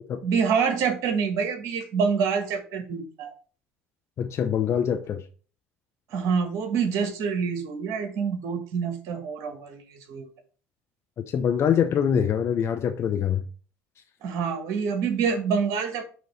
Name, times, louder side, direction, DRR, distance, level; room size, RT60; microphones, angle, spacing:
voice 1, 0.2-3.3 6.1-10.3 14.2-16.0, right 6 dB, 65° right, 1.3 m, -26 dB
voice 2, 4.2-5.2 11.3-13.4, left 8 dB, 50° left, 0.7 m, -24 dB
5.8 x 2.9 x 5.5 m
hypercardioid pair, 65°, 6 cm